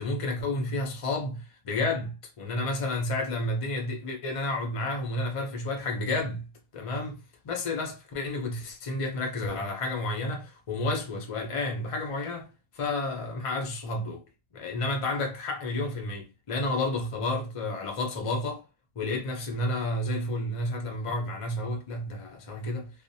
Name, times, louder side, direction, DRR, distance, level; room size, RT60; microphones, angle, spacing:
voice 1, 0.0-6.5 6.7-12.5 12.7-14.2 14.5-18.6 19.0-22.9, left 2 dB, 60° left, 0.3 m, -31 dB
2.5 x 2.0 x 2.7 m
omnidirectional pair, 1.5 m